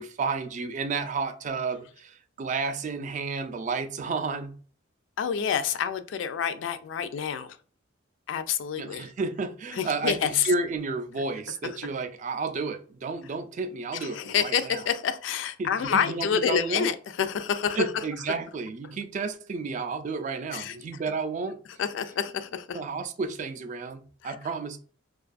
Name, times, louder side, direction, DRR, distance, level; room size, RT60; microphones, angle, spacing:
voice 1, 0.0-4.5 8.8-14.8 15.6-16.9 17.8-21.6 22.7-24.8, right 4 dB, 40° right, 0.3 m, -31 dB
voice 2, 5.2-7.6 8.3-9.1 9.7-10.5 13.9-17.9 20.5-20.8 21.8-22.8 24.2-24.3, left 7 dB, 75° left, 0.3 m, -28 dB
2.5 x 2.3 x 2.3 m
head